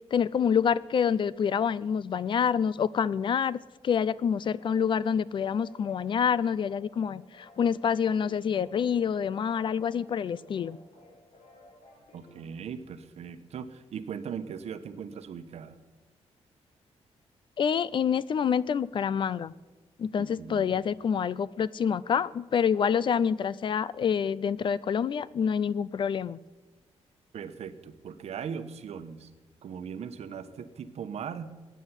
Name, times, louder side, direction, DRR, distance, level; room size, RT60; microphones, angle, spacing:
voice 1, 0.1-3.6 3.8-10.8 17.6-19.5 20.0-26.4, left 7 dB, 45° left, 20 dB, 0.4 m, -27 dB
sound 1, 4.6-12.6, left 2 dB, 65° left, 5.6 m, -56 dB
voice 2, 12.1-15.8 20.2-20.8 27.3-29.3 29.6-31.5, right 7 dB, 65° right, 10 dB, 1.1 m, -39 dB
15.0 x 9.3 x 9.8 m, 1.2 s
wide cardioid pair, 160°, 12 cm